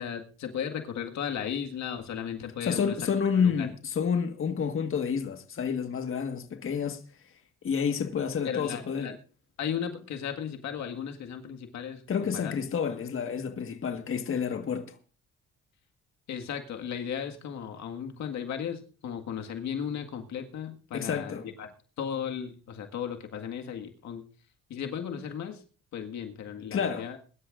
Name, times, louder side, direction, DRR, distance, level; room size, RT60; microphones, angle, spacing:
voice 1, 0.0-3.0 3.3-3.7 8.4-9.1 9.6-12.5 16.3-21.7 22.0-24.2 24.7-25.6 25.9-27.2, left 8 dB, 70° left, 1.8 m, -35 dB
voice 2, 2.6-7.0 7.6-9.2 12.1-15.0 20.9-21.5 26.7-27.1, left 6 dB, 45° left, 1.7 m, -29 dB
23.0 x 12.0 x 2.5 m
supercardioid pair, 80°, 30 cm